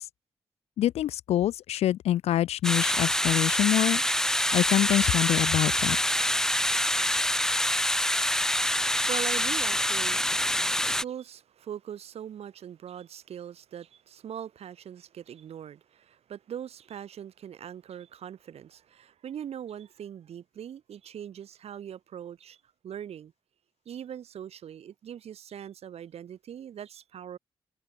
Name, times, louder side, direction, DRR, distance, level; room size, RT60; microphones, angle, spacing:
voice 1, 0.8-4.0 4.5-6.0, left 12 dB, 80° left, 0.6 m, -25 dB
sound 1, 2.6-11.0, left 1 dB, 5° left, 0.6 m, -26 dB
voice 2, 8.8-23.3 23.9-27.4, right 9 dB, 75° right, 5.3 m, -41 dB
supercardioid pair, 40°, 11 cm